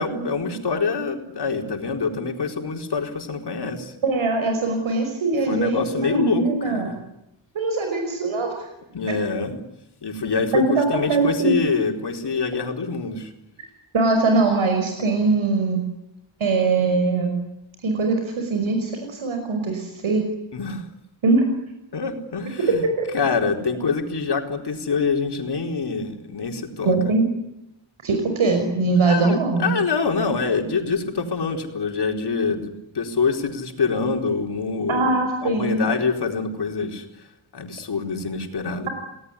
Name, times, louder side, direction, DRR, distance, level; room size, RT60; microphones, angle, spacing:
voice 1, 0.0-3.9 5.5-7.0 8.9-9.6 10.0-10.6 10.9-13.3 20.5-20.9 21.9-22.8 23.1-27.0 29.1-37.0 37.5-38.9, left 4 dB, 55° left, 3 dB, 4.5 m, -25 dB
voice 2, 4.0-6.9 7.5-8.7 9.1-9.2 10.5-11.6 13.9-15.8 16.4-17.4 17.8-20.2 21.2-21.5 23.0-23.1 26.8-27.3 28.0-29.7 34.9-35.9, right 3 dB, 85° right, 4 dB, 5.8 m, -21 dB
30.0 x 19.0 x 9.9 m, 0.89 s
wide cardioid pair, 170°, 47 cm